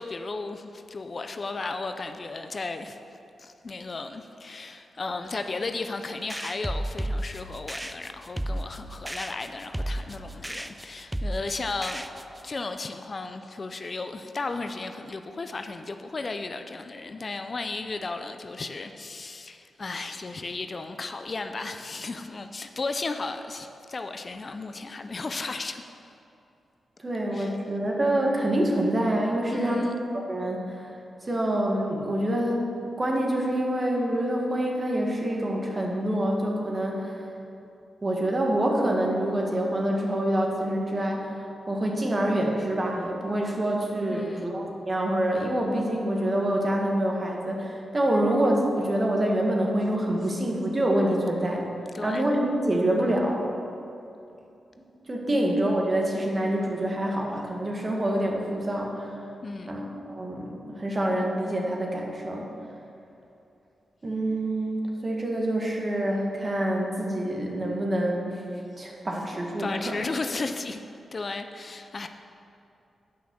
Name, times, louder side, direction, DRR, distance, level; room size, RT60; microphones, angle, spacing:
voice 1, 0.0-3.0 3.4-12.1 12.4-25.8 27.3-27.6 29.5-30.0 44.1-44.5 51.9-52.3 55.3-55.5 59.4-59.8 69.6-70.8 71.1-72.1, left 3 dB, 50° left, 7 dB, 0.5 m, -34 dB
sound 1, 6.3-12.5, right 1 dB, 10° right, 0.5 m, -34 dB
voice 2, 27.0-29.9 30.3-30.9 31.2-32.6 33.0-37.2 38.0-51.7 52.0-53.4 55.1-59.2 59.7-62.5 64.0-68.4 68.8-70.0, right 1 dB, 35° right, -1 dB, 1.8 m, -26 dB
8.5 x 5.7 x 6.2 m, 2.8 s
supercardioid pair, 45°, 0 cm